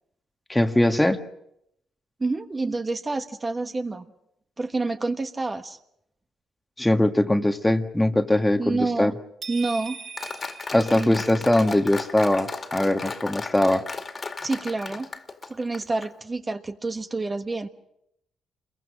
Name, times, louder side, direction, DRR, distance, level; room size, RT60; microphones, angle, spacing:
voice 1, 0.5-1.2 6.8-9.1 10.7-13.8, left 1 dB, 10° left, 7 dB, 1.6 m, -21 dB
voice 2, 2.2-4.1 4.6-5.8 8.6-9.1 9.5-10.0 11.0-11.2 14.4-15.1 15.5-17.7, right 3 dB, 25° right, 6 dB, 1.4 m, -28 dB
sound 1, 9.4-11.6, right 6 dB, 50° right, 6.1 m, -40 dB
Applause, 10.2-16.1, left 4 dB, 35° left, 2.3 m, -35 dB
28.0 x 22.5 x 6.4 m, 0.76 s
cardioid pair, 90°, 0 cm